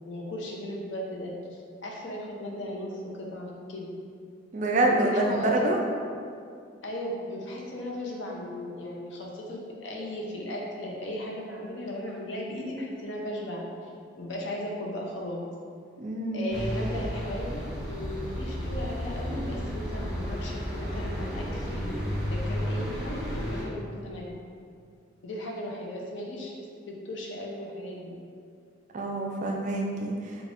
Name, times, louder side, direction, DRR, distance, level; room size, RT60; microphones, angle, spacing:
voice 1, 0.0-3.9 4.9-5.6 6.8-13.9 14.2-15.4 16.3-22.0 22.3-24.3 25.2-28.1, left 1 dB, 70° left, -1 dB, 0.6 m, -36 dB
voice 2, 4.5-5.8 16.0-16.5 28.9-30.4, right 2 dB, 40° right, 0 dB, 0.3 m, -26 dB
sound 1, 16.5-23.6, equal, ahead, 1.2 m, -32 dB
4.9 x 2.4 x 2.5 m, 2.3 s
head